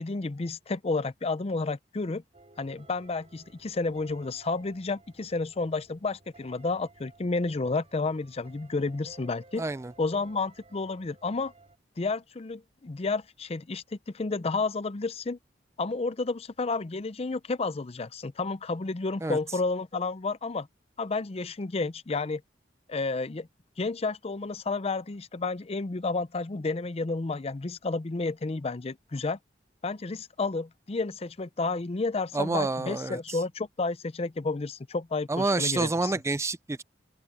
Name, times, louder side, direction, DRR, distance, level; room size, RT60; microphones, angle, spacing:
voice 1, 0.0-2.2 2.6-9.6 10.0-11.5 12.0-15.4 15.8-20.7 21.0-22.4 22.9-23.5 23.8-29.4 29.8-36.1, left 3 dB, 35° left, 0.5 m, -31 dB
sound 1, 2.3-11.8, right 2 dB, 35° right, 4.0 m, -56 dB
voice 2, 9.6-9.9 19.2-19.4 32.3-33.4 35.3-36.8, right 3 dB, 15° right, 0.4 m, -28 dB
open air
head